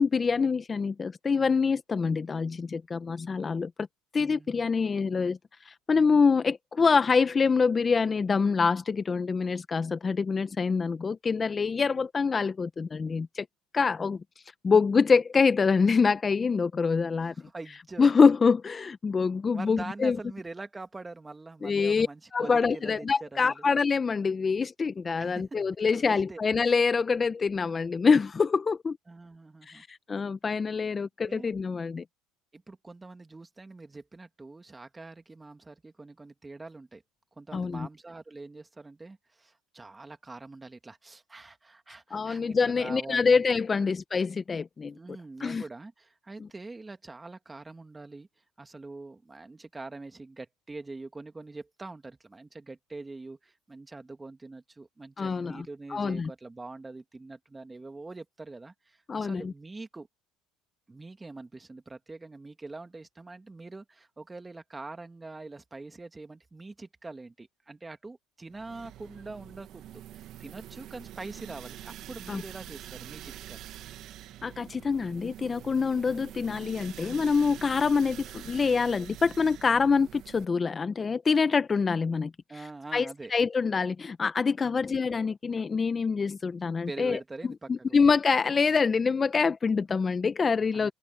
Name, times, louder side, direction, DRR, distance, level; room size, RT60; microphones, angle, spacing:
voice 1, 0.0-3.7 4.1-5.4 5.6-13.5 13.7-14.2 14.6-17.3 18.0-20.2 21.6-22.1 22.3-29.0 29.7-32.0 37.5-37.9 42.1-45.0 45.4-45.6 55.2-55.6 55.9-56.3 59.1-59.5 72.3-72.4 74.4-82.3 82.9-87.2 87.7-90.9, left 5 dB, 25° left, 0.9 m, -25 dB
voice 2, 4.2-4.8 17.2-18.1 19.5-23.6 25.2-25.6 25.9-26.4 29.1-29.8 31.3-31.6 32.5-37.0 37.4-43.3 43.7-43.9 44.9-48.3 48.6-60.1 60.9-73.7 82.5-83.3 84.6-85.0 86.9-88.0 90.7-90.9, right 3 dB, 15° right, 2.5 m, -44 dB
sound 1, 68.5-80.4, right 12 dB, 60° right, 1.5 m, -45 dB
supercardioid pair, 90°, 0 cm